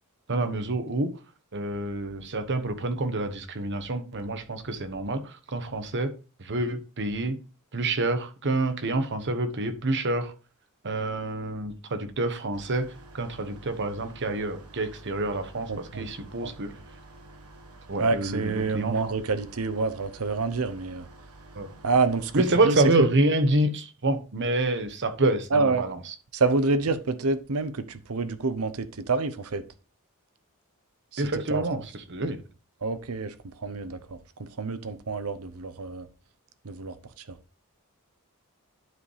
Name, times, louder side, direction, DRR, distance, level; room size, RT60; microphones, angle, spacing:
voice 1, 0.3-1.1 1.5-6.1 6.4-7.4 7.7-10.3 10.8-16.7 17.9-19.1 21.5-21.8 22.3-26.1 31.2-32.4, right 2 dB, 55° right, 1.1 m, -27 dB
sound 1, 12.5-22.7, right 2 dB, 85° right, 1.4 m, -49 dB
voice 2, 15.7-16.1 16.4-16.5 18.0-21.1 21.8-22.7 25.5-25.9 26.3-29.6 31.1-31.2 31.5-31.6 32.8-33.3 33.6-34.0 34.4-36.1 36.6-36.9 37.3-37.4, right 3 dB, 70° right, 0.8 m, -27 dB
11.5 x 4.9 x 3.3 m
head